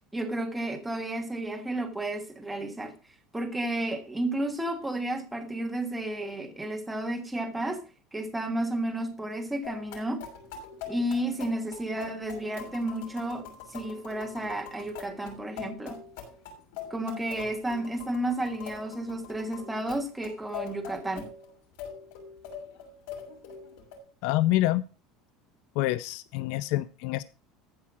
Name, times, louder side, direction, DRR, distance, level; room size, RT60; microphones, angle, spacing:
voice 1, 0.1-2.9 3.3-7.8 8.1-10.3 10.9-16.0 16.9-21.3, right 1 dB, 5° right, 1.5 m, -32 dB
sound 1, 9.6-24.0, left 7 dB, 75° left, 6.4 m, -43 dB
voice 2, 24.2-24.8 25.8-27.2, left 16 dB, 60° left, 0.5 m, -26 dB
14.5 x 5.6 x 6.1 m
cardioid pair, 170°, 0 cm